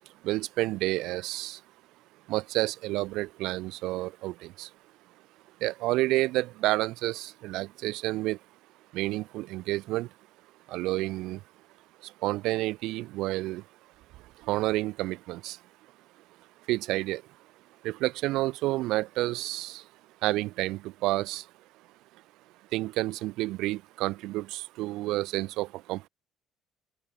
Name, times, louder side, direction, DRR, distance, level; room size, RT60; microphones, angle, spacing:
voice 1, 0.2-1.6 2.3-4.7 5.6-8.4 8.9-10.1 10.7-11.4 12.2-13.6 14.5-15.6 16.7-17.2 17.8-19.8 20.2-21.4 22.7-26.1, right 18 dB, 75° right, 1.3 m, -30 dB
open air
cardioid pair, 170°, 0 cm